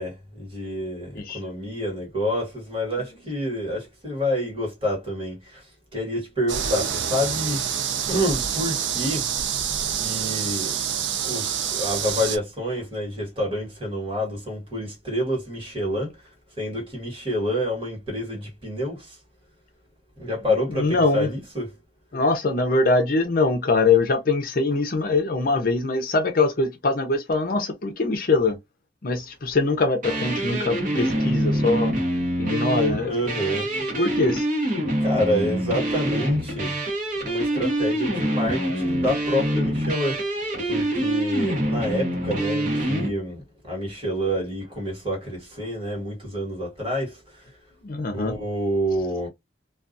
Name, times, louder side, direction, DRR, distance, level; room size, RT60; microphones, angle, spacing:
voice 1, 0.0-9.3 9.9-10.8 11.2-16.2 16.6-19.2 20.2-21.7 33.1-33.7 35.0-36.8 37.2-40.3 40.7-47.5 48.1-49.3, equal, 30° right, 1.3 m, -28 dB
sound 1, 6.5-12.4, right 8 dB, 75° right, 0.4 m, -27 dB
voice 2, 20.7-21.3 22.1-28.6 29.0-31.9 32.4-33.1 34.0-34.5 47.8-48.3, left 3 dB, 50° left, 0.5 m, -23 dB
sound 2, 30.0-43.1, right 1 dB, 45° right, 1.0 m, -25 dB
2.4 x 2.3 x 2.5 m
head